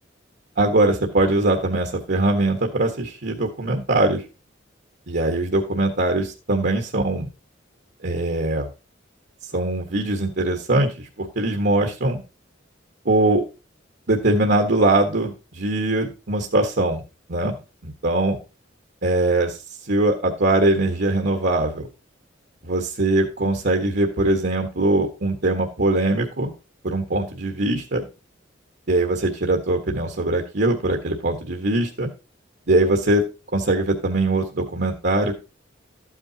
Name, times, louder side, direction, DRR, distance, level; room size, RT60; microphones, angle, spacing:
voice 1, 0.6-4.2 5.1-7.3 8.0-8.7 9.5-12.2 13.0-13.4 14.1-17.0 17.3-17.6 17.8-18.4 19.0-21.9 22.6-26.5 26.8-28.0 28.9-32.1 32.7-33.2 33.5-35.3, right 2 dB, 60° right, 3 dB, 1.5 m, -21 dB
13.5 x 8.9 x 2.9 m, 0.30 s
head